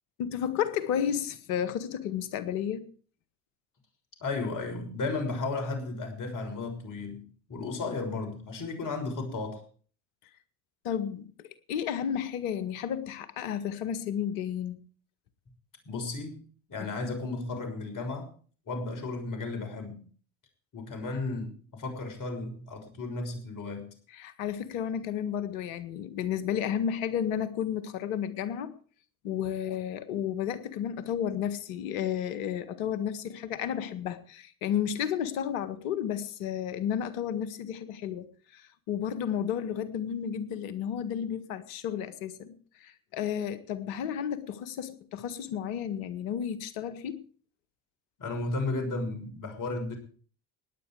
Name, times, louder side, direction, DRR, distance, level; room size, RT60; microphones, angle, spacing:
voice 1, 0.2-2.9 10.8-14.8 16.8-16.9 24.1-28.7 29.2-47.2, left 9 dB, 70° left, 13 dB, 1.7 m, -32 dB
voice 2, 4.2-9.6 15.9-16.4 16.7-18.3 18.7-20.0 20.7-23.9 48.2-50.0, left 3 dB, 45° left, 6 dB, 6.3 m, -34 dB
18.0 x 10.5 x 4.9 m, 0.42 s
hypercardioid pair, 60°, 43 cm